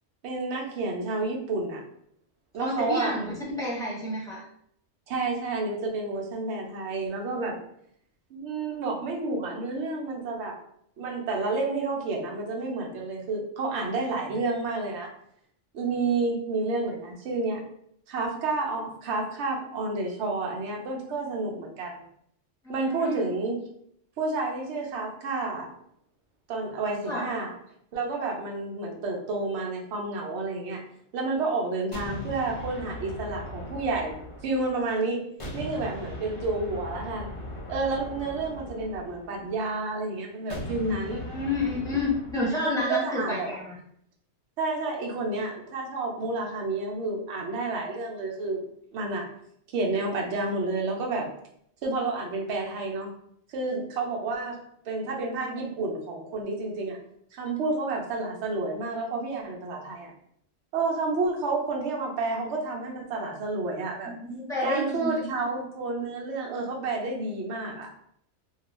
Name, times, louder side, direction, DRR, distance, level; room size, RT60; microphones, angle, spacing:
voice 1, 0.2-1.8 2.5-3.2 5.1-7.6 8.3-10.6 11.0-15.1 15.7-17.6 18.1-22.0 22.7-23.7 24.2-25.7 26.5-27.5 27.9-30.8 31.1-35.3 35.5-37.3 37.7-41.3 42.6-43.5 44.6-48.6 48.9-49.3 49.7-51.4 51.8-53.1 53.5-54.6 54.9-57.0 57.3-60.1 60.7-64.1 64.6-68.0, right 3 dB, 65° right, 0 dB, 0.8 m, -30 dB
voice 2, 2.6-3.2 3.6-4.4 22.6-23.3 27.0-27.3 41.2-43.8 64.0-65.3, left 2 dB, 5° left, -7 dB, 0.8 m, -29 dB
sound 1, 31.9-34.9 35.4-39.6 40.5-42.6, equal, 45° left, 0.4 m, -39 dB
2.3 x 2.2 x 3.0 m, 0.69 s
omnidirectional pair, 1.4 m